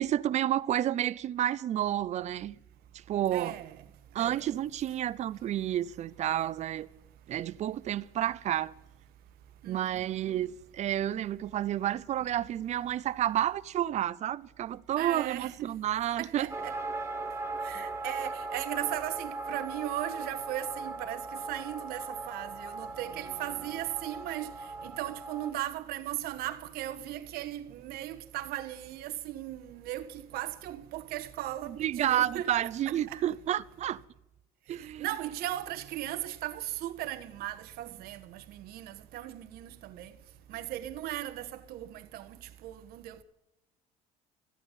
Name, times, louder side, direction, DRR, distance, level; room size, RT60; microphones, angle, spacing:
voice 1, 0.0-2.6 2.9-3.6 4.1-6.9 7.3-8.7 9.7-16.5 31.7-34.0 34.7-35.1, right 12 dB, 45° right, 0.6 m, -30 dB
voice 2, 3.3-3.8 4.2-4.5 9.6-10.4 14.9-15.7 16.2-16.8 17.6-32.5 32.9-33.4 35.0-40.1 40.5-43.2, right 13 dB, 70° right, 1.4 m, -37 dB
sound 1, 16.5-25.5, right 3 dB, 15° right, 2.8 m, -38 dB
14.5 x 8.7 x 9.2 m
cardioid pair, 115°, 17 cm